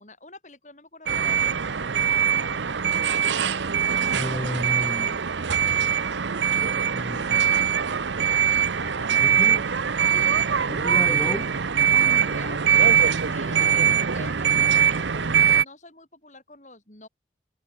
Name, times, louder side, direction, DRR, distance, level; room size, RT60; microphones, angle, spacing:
voice 1, 0.0-2.8 5.0-5.6 8.6-10.8 12.2-17.1, left 2 dB, 40° left, 4.2 m, -46 dB
sound 1, 1.1-15.6, right 8 dB, 80° right, 0.8 m, -22 dB
voice 2, 4.1-5.2 6.6-7.5 9.2-9.6 10.7-11.5, left 1 dB, 15° left, 0.8 m, -32 dB
head